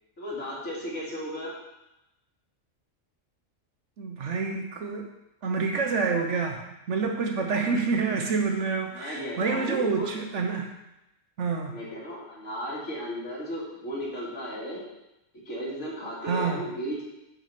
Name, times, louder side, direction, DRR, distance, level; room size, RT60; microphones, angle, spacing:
voice 1, 0.2-1.5 8.9-10.1 11.7-14.8 15.3-17.0, equal, 65° left, -6 dB, 2.8 m, -35 dB
voice 2, 4.0-5.1 5.4-10.7 11.4-11.8 16.3-16.6, right 4 dB, 70° right, 3 dB, 1.1 m, -28 dB
6.7 x 5.9 x 5.7 m, 0.93 s
omnidirectional pair, 1.3 m